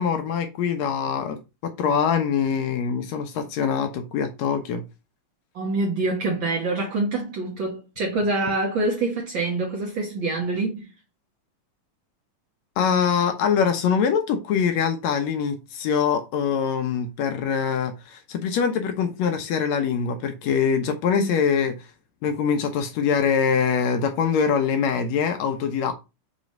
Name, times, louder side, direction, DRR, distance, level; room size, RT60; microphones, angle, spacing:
voice 1, 0.0-4.8 12.8-21.9 22.2-25.9, left 7 dB, 75° left, 1.6 m, -23 dB
voice 2, 5.5-10.9 21.2-21.3, right 2 dB, 80° right, 1.0 m, -25 dB
6.1 x 3.2 x 5.2 m
omnidirectional pair, 3.9 m